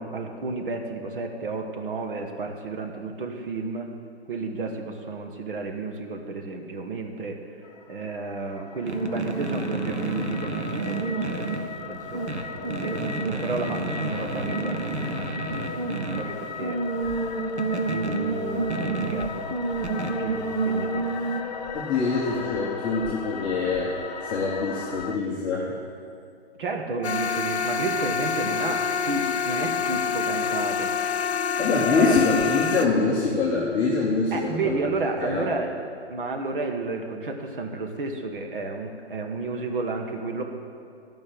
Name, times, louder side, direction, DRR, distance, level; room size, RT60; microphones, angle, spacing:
voice 1, 0.0-3.9 4.3-7.4 7.9-16.8 17.1-17.3 17.7-19.5 20.0-21.1 26.6-30.9 31.9-32.2 34.3-35.7 36.1-40.4, right 3 dB, 50° right, 3 dB, 1.2 m, -32 dB
sound 1, 7.6-25.2, left 5 dB, 40° left, 0.6 m, -37 dB
sound 2, 8.8-21.4, right 3 dB, 85° right, 1.2 m, -29 dB
voice 2, 21.7-23.9 24.2-25.7 31.6-34.8 35.2-35.4, left 4 dB, 15° left, -5 dB, 0.9 m, -24 dB
sound 3, 27.0-32.9, left 6 dB, 70° left, 0.7 m, -26 dB
14.0 x 5.4 x 7.6 m, 2.4 s
figure-of-eight pair, 135°, 33 cm